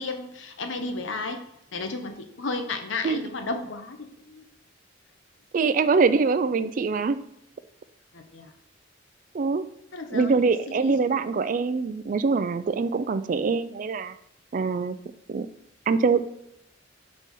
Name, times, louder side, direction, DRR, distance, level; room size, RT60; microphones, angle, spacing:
voice 1, 0.0-1.4 1.7-4.4 8.1-8.5 9.9-10.4 10.7-11.1, left 3 dB, 90° left, 6 dB, 0.8 m, -33 dB
voice 2, 5.5-7.2 9.3-9.6 10.1-14.1 14.5-15.0 15.3-15.5 15.9-16.2, right 4 dB, 45° right, 12 dB, 0.3 m, -24 dB
4.7 x 4.1 x 5.4 m, 0.79 s
head